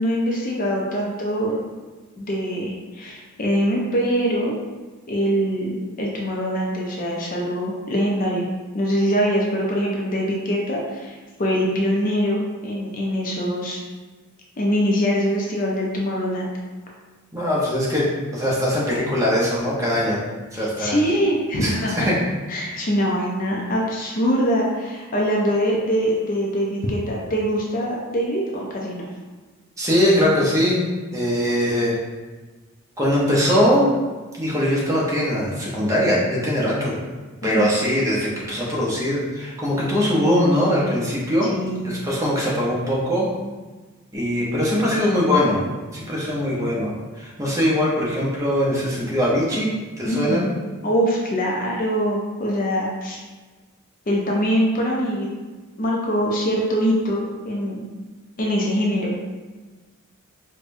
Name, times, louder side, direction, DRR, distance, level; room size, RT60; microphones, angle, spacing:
voice 1, 0.0-1.6 2.2-4.5 5.1-8.5 8.7-13.8 14.6-16.5 20.5-22.1 22.5-29.1 37.4-37.7 41.5-41.9 50.0-50.5 50.8-53.2 54.1-55.3 55.8-57.8 58.4-59.1, equal, 40° left, -2 dB, 0.4 m, -23 dB
voice 2, 17.3-20.2 20.5-21.0 21.6-21.7 22.0-22.2 29.8-30.8 31.1-32.0 33.0-33.9 34.4-37.0 37.4-41.5 41.8-43.3 44.1-50.4, equal, 15° right, -6 dB, 0.6 m, -21 dB
4.8 x 2.2 x 2.5 m, 1.3 s
head